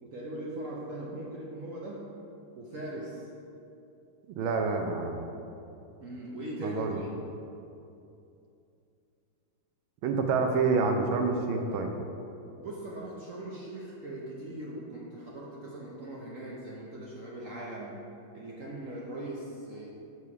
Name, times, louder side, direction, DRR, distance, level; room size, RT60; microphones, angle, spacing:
voice 1, 0.0-2.1 2.5-3.3 6.0-7.1 12.6-18.0 18.3-19.9, right 1 dB, 65° right, -4 dB, 0.8 m, -40 dB
voice 2, 4.3-5.2 6.6-7.0 10.0-11.9, right 4 dB, 85° right, 4 dB, 1.5 m, -27 dB
6.9 x 4.7 x 4.8 m, 2.7 s
omnidirectional pair, 2.2 m